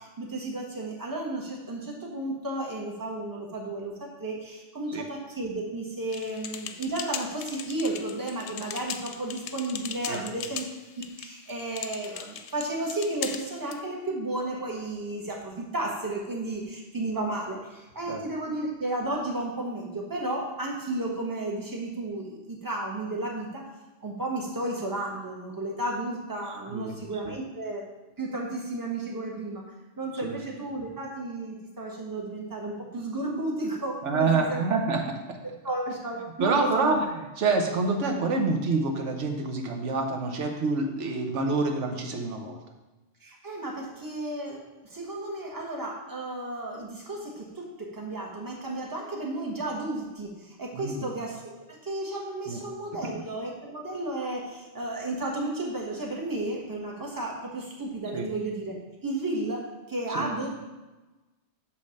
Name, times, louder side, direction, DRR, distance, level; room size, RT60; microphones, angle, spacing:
voice 1, 0.0-10.6 11.0-23.6 24.0-27.9 28.2-29.6 30.0-34.6 35.6-37.0 43.2-58.7 59.0-59.6 59.9-60.5, right 2 dB, 15° right, -2 dB, 1.3 m, -33 dB
sound 1, 6.1-13.8, left 8 dB, 75° left, 0.9 m, -39 dB
voice 2, 26.7-27.3 30.2-30.4 34.0-35.0 36.4-37.0 37.4-42.6 50.7-51.1 52.5-52.6 58.1-58.3 60.1-60.3, right 3 dB, 80° right, 3 dB, 1.2 m, -27 dB
8.5 x 3.3 x 6.4 m, 1.1 s
omnidirectional pair, 1.2 m